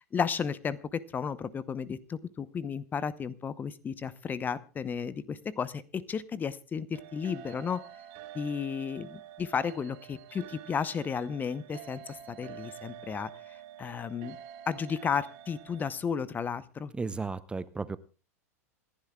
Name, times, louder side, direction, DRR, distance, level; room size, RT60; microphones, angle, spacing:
voice 1, 0.0-7.8 8.3-14.4 14.7-16.9, left 6 dB, 20° left, 18 dB, 0.8 m, -33 dB
sound 1, 6.9-16.0, right 11 dB, 50° right, 2.2 m, -48 dB
voice 2, 16.9-18.0, right 4 dB, 10° right, 16 dB, 0.7 m, -34 dB
27.5 x 11.5 x 2.3 m, 0.35 s
figure-of-eight pair, 90°, 8 cm